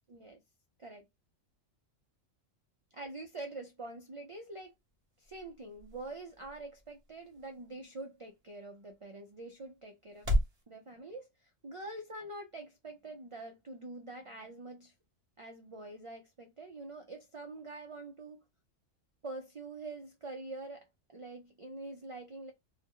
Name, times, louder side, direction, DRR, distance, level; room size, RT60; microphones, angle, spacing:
voice 1, 0.1-0.4 0.8-1.0 2.9-4.7 5.2-10.3 10.7-14.9 15.4-18.4 19.2-22.5, right 2 dB, 60° right, 0.3 m, -45 dB
sound 1, 4.4-10.6, equal, 30° right, 1.0 m, -39 dB
2.7 x 2.1 x 3.6 m
omnidirectional pair, 1.3 m